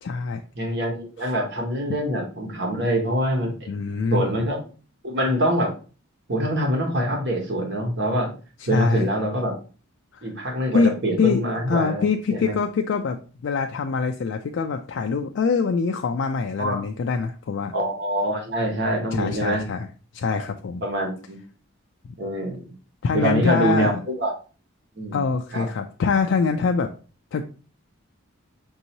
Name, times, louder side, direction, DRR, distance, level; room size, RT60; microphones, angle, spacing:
voice 1, 0.0-0.4 1.2-1.3 3.7-4.3 8.6-9.1 10.1-10.3 10.7-17.7 19.1-19.9 20.1-20.8 22.0-22.1 23.0-24.0 25.1-26.9 27.3-27.4, left 5 dB, 60° left, 4 dB, 0.3 m, -24 dB
voice 2, 0.6-3.5 4.1-4.6 5.0-5.7 6.3-8.3 8.7-9.5 10.2-12.0 12.3-12.6 16.6-16.8 17.7-19.6 20.3-20.4 20.8-21.4 22.2-22.7 23.1-24.3 25.0-25.2 25.5-25.6, equal, 55° right, 1 dB, 1.2 m, -24 dB
5.3 x 2.7 x 2.9 m, 0.36 s
head